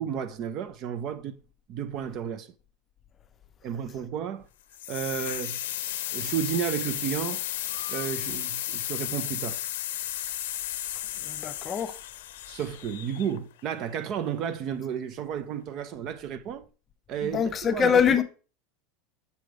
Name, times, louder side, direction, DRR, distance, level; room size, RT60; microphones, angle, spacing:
voice 1, 0.0-1.4 1.7-2.5 3.6-4.5 4.9-5.6 6.1-7.4 7.9-9.6 12.5-16.6 17.1-18.0, right 8 dB, 45° right, 0.5 m, -32 dB
sound 1, 4.7-13.6, left 13 dB, 90° left, 0.5 m, -34 dB
voice 2, 11.3-11.9 17.2-18.2, left 7 dB, 25° left, 0.6 m, -23 dB
6.8 x 3.2 x 4.9 m
supercardioid pair, 140°, 0 cm